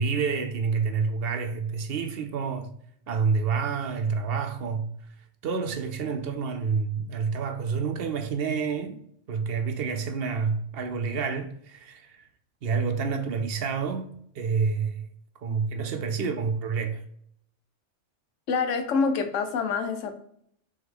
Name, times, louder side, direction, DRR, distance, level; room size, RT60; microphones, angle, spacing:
voice 1, 0.0-2.7 3.1-4.9 5.4-9.0 9.3-12.2 12.6-15.0 15.4-17.0, right 5 dB, 60° right, 0.7 m, -28 dB
voice 2, 18.5-20.1, left 5 dB, 90° left, 1.0 m, -26 dB
3.5 x 3.5 x 3.5 m
omnidirectional pair, 1.2 m